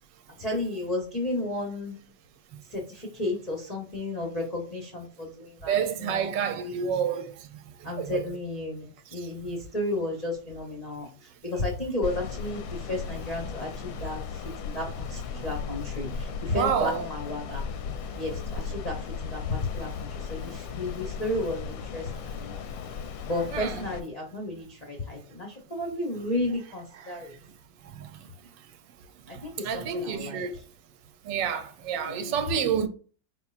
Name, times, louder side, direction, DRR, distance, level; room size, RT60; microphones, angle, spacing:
voice 1, 0.3-2.0 2.7-6.8 7.8-8.8 9.1-17.6 18.1-22.6 23.3-27.3 29.3-30.6 32.0-32.5, left 1 dB, 50° left, 0.4 m, -33 dB
voice 2, 5.7-7.3 8.0-8.2 16.5-17.1 23.5-23.8 27.0-27.1 28.0-28.1 29.6-30.5 31.3-32.9, right 7 dB, 75° right, 1.2 m, -28 dB
sound 1, 12.0-24.0, left 6 dB, 85° left, 1.3 m, -36 dB
4.5 x 4.3 x 2.4 m
omnidirectional pair, 2.1 m